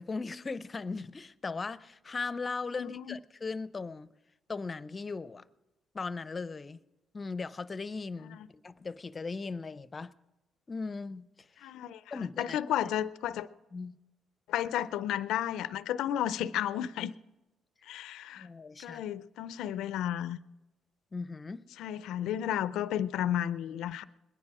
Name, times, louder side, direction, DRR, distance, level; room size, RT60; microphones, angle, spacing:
voice 1, 0.0-4.1 4.5-5.4 5.9-6.8 7.1-8.4 8.6-10.1 10.7-11.7 12.1-12.6 13.7-14.0 18.4-19.0 21.1-21.6, left 4 dB, 30° left, 0.5 m, -38 dB
voice 2, 2.8-3.2 8.3-8.4 11.6-13.5 14.5-17.1 17.8-18.5 18.8-20.4 21.8-24.0, left 11 dB, 85° left, 0.4 m, -33 dB
21.5 x 9.8 x 4.8 m
cardioid pair, 90°, 0 cm